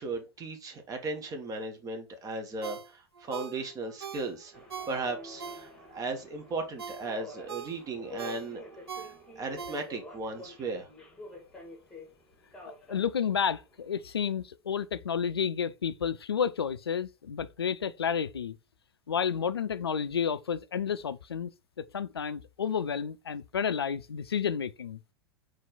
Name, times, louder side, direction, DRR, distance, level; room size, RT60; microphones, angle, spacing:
voice 1, 0.0-8.6 8.9-10.9, right 3 dB, 25° right, 1.2 m, -36 dB
Ringtone, 2.6-6.1 6.5-10.2 10.6-10.7, right 7 dB, 80° right, 0.5 m, -43 dB
Subway metro underground, 4.5-14.2, left 2 dB, 5° left, 1.8 m, -49 dB
voice 2, 12.7-18.6 19.1-21.5 21.8-25.0, left 7 dB, 80° left, 0.4 m, -31 dB
4.4 x 3.2 x 3.8 m
figure-of-eight pair, 90°, 13 cm